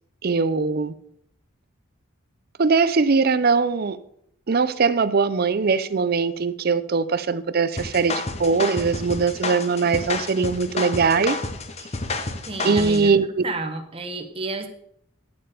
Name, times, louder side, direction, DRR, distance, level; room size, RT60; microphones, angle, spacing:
voice 1, 0.2-0.9 2.6-4.0 4.5-8.1 8.4-11.4 12.6-13.4, right 4 dB, 45° right, 14 dB, 0.5 m, -21 dB
sound 1, 7.8-13.1, left 3 dB, 30° left, 0.8 m, -30 dB
voice 2, 12.5-13.1 13.4-14.7, right 3 dB, 25° right, 6 dB, 1.0 m, -30 dB
10.5 x 6.7 x 5.1 m, 0.70 s
head